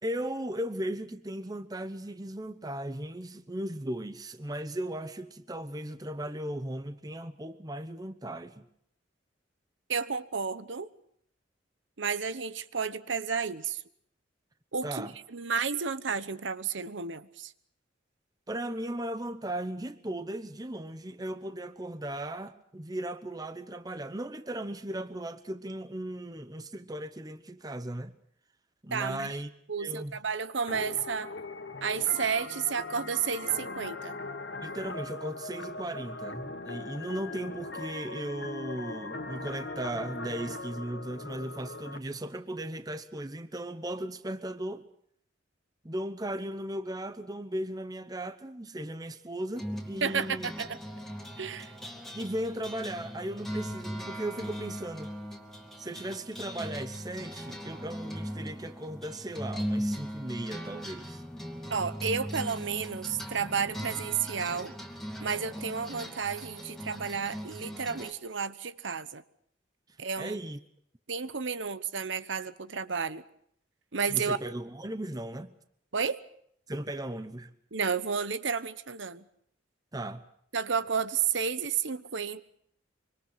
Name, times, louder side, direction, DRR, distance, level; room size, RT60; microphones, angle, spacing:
voice 1, 0.0-8.6 14.8-15.1 18.5-28.1 28.8-29.5 29.8-30.1 34.6-44.8 45.8-50.5 52.1-55.1 55.8-61.2 70.2-70.6 74.1-75.5 76.7-77.5 79.9-80.2, right 1 dB, 20° right, 0.9 m, -37 dB
voice 2, 9.9-10.9 12.0-13.8 14.7-17.5 28.9-29.3 29.7-31.3 31.8-34.2 50.0-50.8 51.4-51.7 61.7-64.7 65.2-69.2 70.0-70.4 71.1-73.2 73.9-74.4 75.9-76.2 77.7-79.2 80.5-82.4, right 6 dB, 75° right, 1.0 m, -31 dB
sound 1, 30.7-42.0, left 3 dB, 65° left, 1.5 m, -40 dB
sound 2, 49.5-68.1, equal, ahead, 2.4 m, -39 dB
25.5 x 24.5 x 5.7 m
head